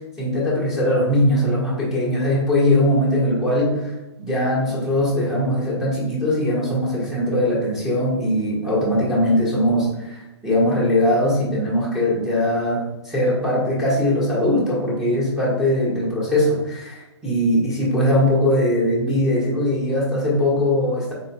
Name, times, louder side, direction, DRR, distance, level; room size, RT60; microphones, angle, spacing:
voice 1, 0.2-3.9 4.2-21.1, left 1 dB, 5° right, -7 dB, 1.4 m, -20 dB
4.1 x 4.0 x 2.2 m, 1.0 s
figure-of-eight pair, 130°, 15 cm